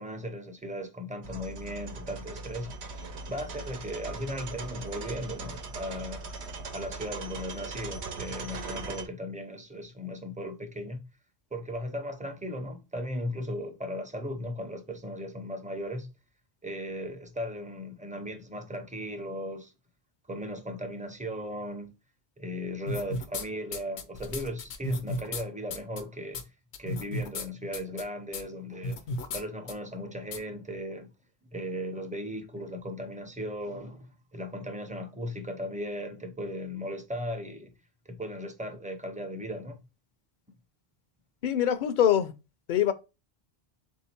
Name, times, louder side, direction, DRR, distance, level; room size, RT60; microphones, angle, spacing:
voice 1, 0.0-2.7 3.3-6.2 6.7-11.0 11.5-16.1 16.6-19.7 20.3-21.9 22.4-26.4 26.8-29.0 29.3-31.1 31.5-34.1 34.3-37.7 38.1-39.8, equal, 10° right, 0.5 m, -37 dB
sound 1, 1.2-9.1, right 3 dB, 85° right, 1.0 m, -40 dB
sound 2, 22.9-23.4 23.7-25.4 25.7-26.0 26.3-26.4 26.7-27.5 27.7-28.0 28.3-28.4 28.8-29.4 29.7-29.8 30.3-30.4, left 2 dB, 80° left, 1.0 m, -34 dB
voice 2, 41.4-42.3 42.7-42.9, left 10 dB, 55° left, 0.6 m, -24 dB
3.8 x 2.7 x 4.3 m
omnidirectional pair, 1.1 m